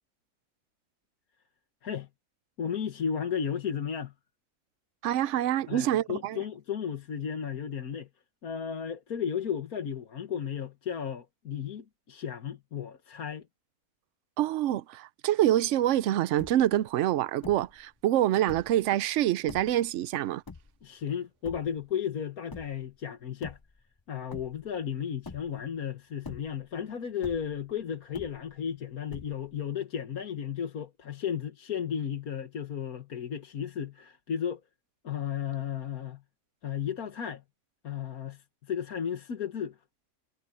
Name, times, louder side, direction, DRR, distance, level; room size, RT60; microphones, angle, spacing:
voice 1, 2.6-4.1 5.7-8.1 8.4-13.5 20.8-23.6 24.1-34.6 35.0-36.2 36.6-37.4 37.8-39.8, left 8 dB, 75° left, 1.9 m, -34 dB
voice 2, 5.0-6.4 14.4-20.4, right 12 dB, 65° right, 0.8 m, -26 dB
sound 1, 15.9-16.0 16.2-16.8 17.4-17.8 18.3-18.9 19.5-19.9 20.5-21.0 21.4-21.9 22.5-22.9 23.3-24.0 24.3-24.8 25.2-25.8 26.2-26.8 27.2-27.7 28.1-28.7 29.1-29.6, left 4 dB, 35° left, 0.3 m, -45 dB
omnidirectional pair, 1.5 m